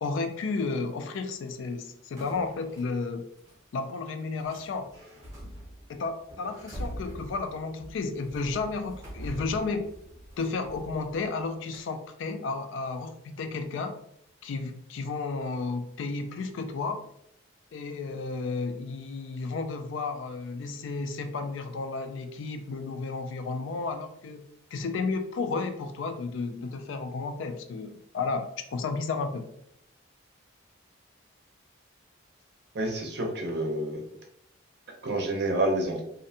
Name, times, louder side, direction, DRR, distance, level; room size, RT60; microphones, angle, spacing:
voice 1, 0.0-3.2 3.7-4.9 5.9-9.9 10.4-14.0 14.4-17.0 17.7-29.5, left 4 dB, 65° left, 8 dB, 0.3 m, -32 dB
sound 1, 2.2-2.9 3.4-3.6 4.4-11.4 11.7-11.8, equal, 15° right, 0.7 m, -44 dB
voice 2, 32.7-34.0 35.0-36.0, right 1 dB, 50° right, 1 dB, 0.6 m, -28 dB
2.6 x 2.1 x 2.7 m, 0.73 s
head